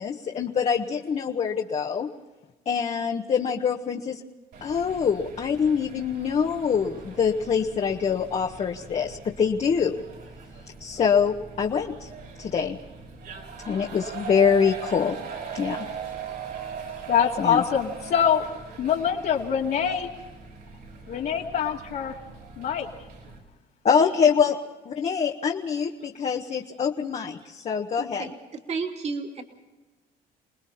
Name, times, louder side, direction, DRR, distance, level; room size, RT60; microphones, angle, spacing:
voice 1, 0.0-2.1 2.6-4.2 4.6-10.0 10.8-12.1 12.4-12.8 13.6-15.2 15.5-15.9 17.4-17.6 23.8-24.6 24.8-28.2, left 6 dB, 40° left, 1 dB, 1.5 m, -24 dB
sound 1, 4.5-23.4, right 6 dB, 70° right, 6.4 m, -41 dB
voice 2, 17.1-18.4 18.8-20.1 21.1-22.2 22.6-22.9 24.2-24.3, left 8 dB, 65° left, -4 dB, 2.6 m, -24 dB
voice 3, 27.9-29.4, right 4 dB, 40° right, 2 dB, 2.9 m, -33 dB
30.0 x 20.0 x 4.3 m, 1.2 s
cardioid pair, 110°, 17 cm